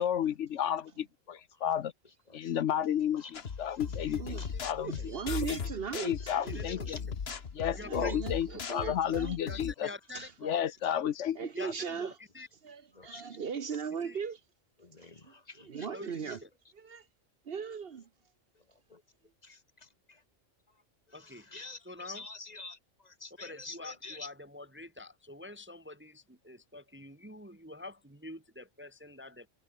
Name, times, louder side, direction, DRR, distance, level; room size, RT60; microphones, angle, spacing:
voice 1, 0.0-1.9 2.3-3.3 3.6-5.0 5.4-5.6 5.9-7.0 7.5-9.9 10.4-11.4 11.6-11.7, left 10 dB, 70° left, 1.0 m, -32 dB
voice 2, 1.3-1.6 2.0-2.7 3.2-4.6 4.8-5.5 6.0-7.0 8.8-9.3 9.8-9.9 10.4-10.5 10.8-10.9 11.6-11.7 12.4-12.5 12.9-13.4 14.8-16.4 16.8-16.9 18.9-19.0 19.4-20.2 20.7-24.3, left 3 dB, 35° left, 1.5 m, -50 dB
sound 1, 3.3-9.7, left 6 dB, 55° left, 1.5 m, -38 dB
voice 3, 4.8-6.6 7.6-9.4 10.1-10.3 11.3-12.2 12.6-14.4 15.0-15.3 15.7-16.4 16.7-17.1 17.5-17.9, right 6 dB, 50° right, 1.1 m, -38 dB
voice 4, 6.5-6.9 7.8-8.2 9.5-10.6 11.5-12.5 14.0-14.2 15.9-16.5 21.1-21.5 21.9-22.2 23.4-29.5, left 2 dB, 10° right, 0.8 m, -46 dB
omnidirectional pair, 1.3 m